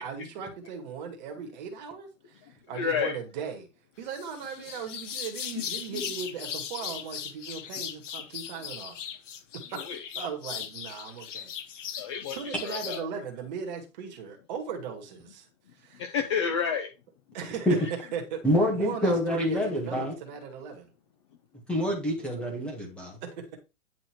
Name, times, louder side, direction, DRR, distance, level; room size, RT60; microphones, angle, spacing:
voice 1, 0.0-3.7 4.0-9.0 9.5-9.9 10.2-11.5 11.9-12.0 12.3-16.2 17.3-18.4 18.7-20.9 22.2-22.4 23.2-23.6, right 6 dB, 35° right, 2.2 m, -38 dB
voice 2, 2.7-3.2 5.9-6.0 9.7-10.0 12.0-12.4 12.6-13.0 16.0-16.9, left 6 dB, 20° left, 0.7 m, -29 dB
sound 1, 4.1-13.0, left 8 dB, 65° left, 1.6 m, -38 dB
voice 3, 18.4-20.1 21.7-23.2, equal, 5° left, 1.7 m, -26 dB
10.5 x 4.2 x 4.7 m
hypercardioid pair, 170°, 40 cm